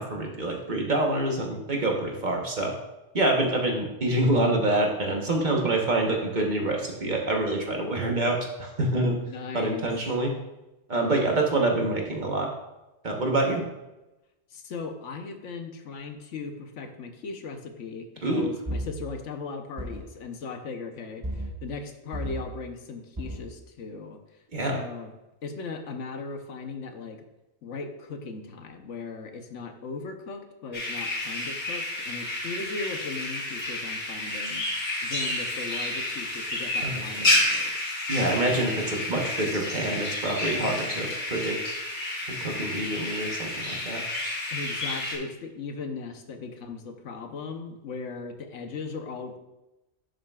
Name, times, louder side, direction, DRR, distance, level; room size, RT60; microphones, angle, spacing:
voice 1, 0.0-2.7 3.1-9.2 9.5-10.3 10.9-12.5 13.0-13.7 18.2-18.5 24.5-24.8 36.8-37.0 38.1-41.8 42.4-44.0, right 2 dB, 40° right, 0 dB, 1.2 m, -26 dB
voice 2, 9.3-9.9 10.9-11.3 14.5-24.2 24.7-25.1 25.4-27.2 27.6-34.6 35.0-37.9 44.5-49.4, left 4 dB, 80° left, 5 dB, 1.2 m, -38 dB
sound 1, 18.6-18.9 19.8-20.0 21.2-21.5 22.1-22.4 23.2-23.4, right 1 dB, 20° right, 0.7 m, -33 dB
sound 2, 30.7-45.2, left 1 dB, 65° left, 2.7 m, -30 dB
11.0 x 6.5 x 2.4 m, 0.99 s
omnidirectional pair, 1.2 m